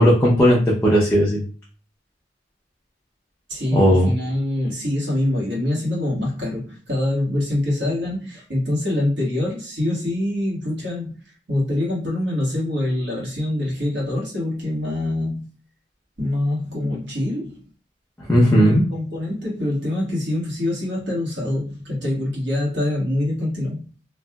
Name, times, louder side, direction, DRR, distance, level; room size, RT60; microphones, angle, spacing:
voice 1, 0.0-1.4 3.7-4.1 18.3-18.8, equal, 15° left, -6 dB, 0.6 m, -16 dB
voice 2, 3.5-15.5 16.2-17.6 18.5-23.9, left 1 dB, 85° right, -4 dB, 1.5 m, -25 dB
3.2 x 2.6 x 2.3 m, 0.38 s
head